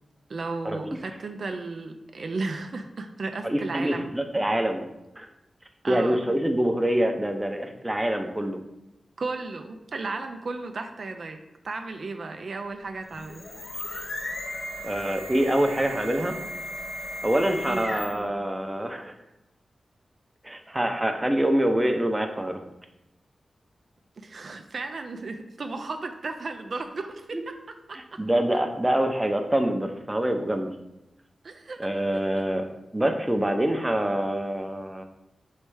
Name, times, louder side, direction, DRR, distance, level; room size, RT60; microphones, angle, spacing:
voice 1, 0.3-4.1 5.8-6.2 9.2-11.4 11.6-13.5 17.6-18.0 24.2-27.3 31.4-31.9, right 3 dB, 65° right, 5 dB, 0.4 m, -34 dB
voice 2, 3.4-4.9 5.2-5.3 5.9-8.6 14.8-16.3 17.2-19.1 20.4-22.6 27.3-27.4 27.9-30.7 31.8-35.0, right 1 dB, 15° right, 5 dB, 0.6 m, -25 dB
sound 1, 13.0-18.3, left 1 dB, 75° left, 0.8 m, -36 dB
3.2 x 3.2 x 4.7 m, 0.91 s
cardioid pair, 60°, 0 cm